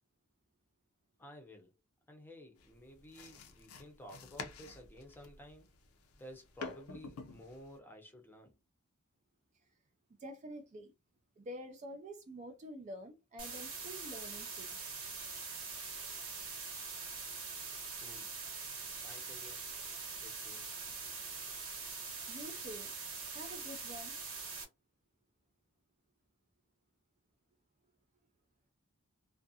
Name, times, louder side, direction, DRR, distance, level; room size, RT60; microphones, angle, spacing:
voice 1, 1.2-1.7 2.1-5.7 6.2-8.6 17.9-18.3 19.0-19.6 20.2-21.0, equal, 10° left, 0.6 m, -53 dB
sound 1, 2.6-7.8, left 4 dB, 80° left, 0.5 m, -49 dB
voice 2, 10.2-10.9 11.4-14.8 22.3-22.9 23.3-24.2, equal, 35° right, 0.4 m, -48 dB
sound 2, 13.4-24.6, right 4 dB, 75° right, 1.0 m, -43 dB
2.4 x 2.2 x 2.6 m
head